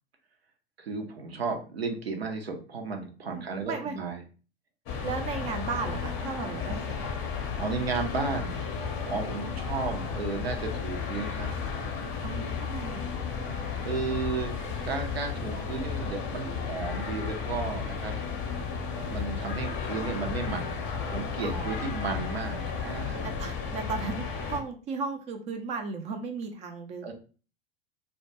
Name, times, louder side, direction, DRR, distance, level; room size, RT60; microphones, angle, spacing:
voice 1, 0.8-4.2 7.6-8.6 9.1-11.5 12.3-12.6 13.8-14.5 14.8-18.2 19.1-20.8 21.1-23.3 27.0-27.1, right 4 dB, 80° right, 4 dB, 0.6 m, -33 dB
voice 2, 3.3-4.0 5.0-7.0 12.2-13.1 21.4-21.9 23.2-27.1, right 4 dB, 25° right, 6 dB, 0.3 m, -35 dB
sound 1, 4.9-24.6, left 5 dB, 40° left, 0.6 m, -33 dB
2.2 x 2.1 x 2.7 m, 0.37 s
figure-of-eight pair, 90°, 30 cm